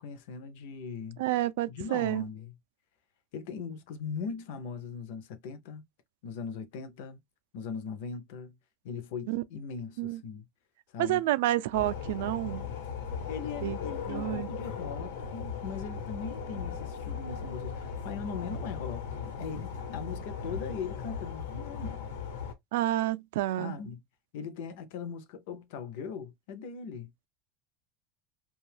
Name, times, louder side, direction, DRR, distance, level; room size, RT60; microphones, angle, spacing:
voice 1, 0.0-1.2 1.7-2.6 3.3-5.8 6.2-7.2 7.5-8.6 8.8-10.5 10.9-11.2 13.3-22.0 23.6-24.0 24.3-27.1, left 6 dB, 65° left, 0.6 m, -40 dB
voice 2, 1.2-2.2 9.3-9.4 10.0-10.2 11.0-12.7 13.6-13.8 14.1-14.5 22.7-23.7, right 15 dB, 75° right, 0.3 m, -29 dB
sound 1, 11.7-22.5, left 6 dB, 85° left, 0.9 m, -37 dB
2.7 x 2.3 x 3.3 m
supercardioid pair, 165°, 0 cm